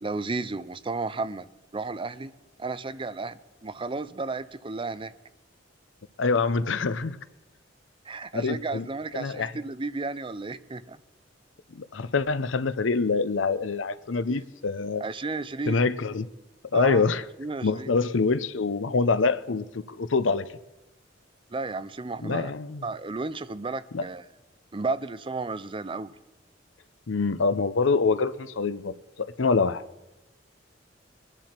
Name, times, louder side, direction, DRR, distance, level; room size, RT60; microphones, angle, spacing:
voice 1, 0.0-1.5 1.7-2.3 2.6-5.1 8.0-11.0 14.3-14.4 15.0-15.8 16.7-17.0 17.4-17.9 21.5-22.5 22.8-24.2 24.7-26.1, right 3 dB, 25° right, 0.5 m, -33 dB
voice 2, 6.2-7.2 8.3-8.9 9.1-9.5 11.7-15.0 15.7-16.3 16.7-17.2 17.6-20.5 22.2-22.8 23.9-24.0 27.1-29.8, left 4 dB, 85° left, 0.7 m, -25 dB
23.5 x 10.0 x 4.4 m
head